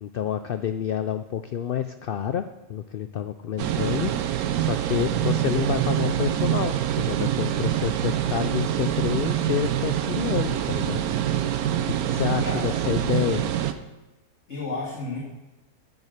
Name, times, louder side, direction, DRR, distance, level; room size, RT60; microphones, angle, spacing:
voice 1, 0.0-2.4 2.7-11.0 11.8-13.5, left 9 dB, 80° left, 10 dB, 0.5 m, -28 dB
sound 1, 3.6-13.7, right 11 dB, 90° right, 1.2 m, -25 dB
voice 2, 14.5-15.2, left 3 dB, 50° left, -5 dB, 2.4 m, -32 dB
9.0 x 8.3 x 6.5 m, 1.1 s
omnidirectional pair, 1.5 m